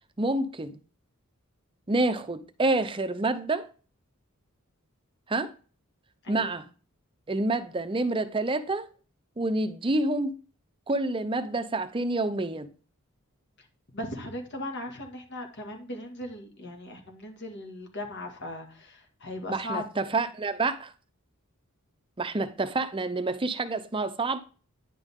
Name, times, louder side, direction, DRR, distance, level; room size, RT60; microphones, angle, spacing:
voice 1, 0.2-0.8 1.9-3.7 5.3-5.5 6.3-6.6 7.3-8.9 9.4-10.4 10.9-12.7 19.5-20.9 22.2-24.4, right 2 dB, 25° right, 0.6 m, -28 dB
voice 2, 13.9-19.9, left 1 dB, 55° left, 2.0 m, -38 dB
9.9 x 5.4 x 3.6 m
head